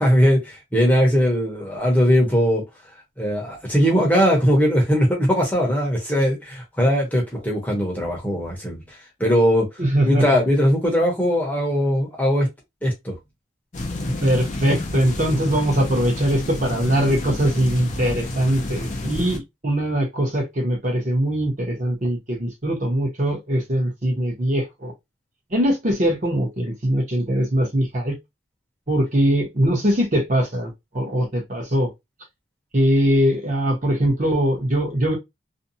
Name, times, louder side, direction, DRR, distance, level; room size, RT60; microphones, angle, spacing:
voice 1, 0.0-2.6 3.2-9.7 10.0-12.5 12.8-13.1, equal, 10° left, 0.8 m, -20 dB
voice 2, 9.8-10.4 14.2-24.9 25.5-28.2 28.9-31.9 32.7-35.2, right 1 dB, 40° right, 0.9 m, -21 dB
sound 1, 13.7-19.4, left 1 dB, 35° left, 0.5 m, -29 dB
2.6 x 2.2 x 2.7 m
head